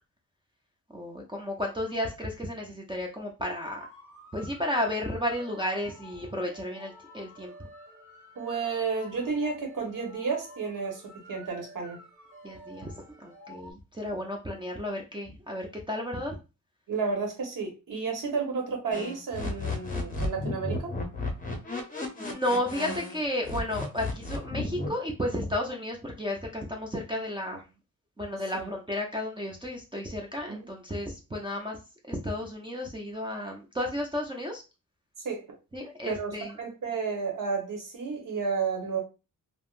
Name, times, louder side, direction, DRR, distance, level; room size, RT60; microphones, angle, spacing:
voice 1, 0.9-3.9 4.3-7.5 12.4-16.4 22.2-27.6 28.2-31.8 32.0-34.6 35.7-36.6, left 1 dB, 15° right, 0 dB, 0.5 m, -33 dB
sound 1, 3.4-13.7, equal, 40° right, 1.6 m, -50 dB
voice 2, 8.4-11.0 11.3-12.0 16.9-20.9 28.5-28.7 30.5-30.7 35.2-35.5 36.1-39.0, right 5 dB, 70° right, 1 dB, 1.1 m, -32 dB
sound 2, 18.9-23.2 23.4-24.9, left 3 dB, 25° left, 0.7 m, -34 dB
3.4 x 2.1 x 2.4 m, 0.30 s
wide cardioid pair, 130°, 34 cm